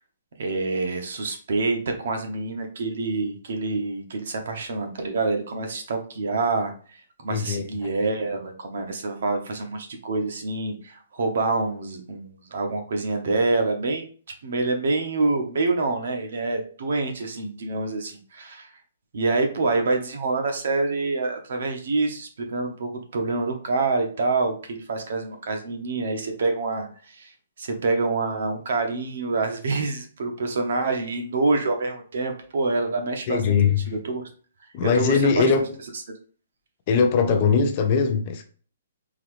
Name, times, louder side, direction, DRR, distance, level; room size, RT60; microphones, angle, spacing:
voice 1, 0.4-14.0 14.4-18.7 19.1-27.3 27.6-33.6 33.9-34.3 34.8-35.6, right 3 dB, 55° right, 0.9 m, -26 dB
voice 2, 7.3-7.9 33.3-33.9 34.7-35.7 36.9-38.5, left 6 dB, 25° left, 0.4 m, -21 dB
3.9 x 2.9 x 3.1 m
hypercardioid pair, 180°, 0 cm